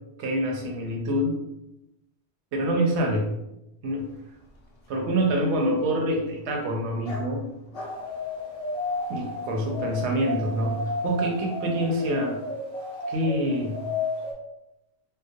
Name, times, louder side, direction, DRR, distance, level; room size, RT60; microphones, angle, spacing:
voice 1, 0.2-1.4 2.5-3.3 3.8-4.1 4.9-7.4 9.1-12.4 13.1-13.9, equal, 80° right, 2 dB, 0.9 m, -26 dB
Dog, 3.9-9.3, left 1 dB, 60° left, 0.3 m, -47 dB
sound 1, 7.7-14.3, left 2 dB, 5° left, 0.5 m, -32 dB
2.3 x 2.1 x 2.6 m, 0.88 s
omnidirectional pair, 1.1 m